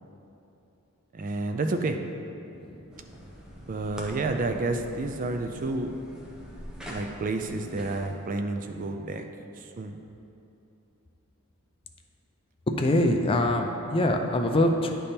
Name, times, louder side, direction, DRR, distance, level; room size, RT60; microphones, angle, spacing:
voice 1, 1.1-2.0 3.7-5.9 6.9-9.2 9.8-10.0, right 2 dB, 35° right, 6 dB, 0.4 m, -30 dB
sound 1, 2.9-8.1, equal, 5° right, 0.7 m, -44 dB
voice 2, 12.8-14.9, left 1 dB, 25° left, 4 dB, 0.4 m, -24 dB
9.8 x 3.4 x 4.3 m, 2.8 s
head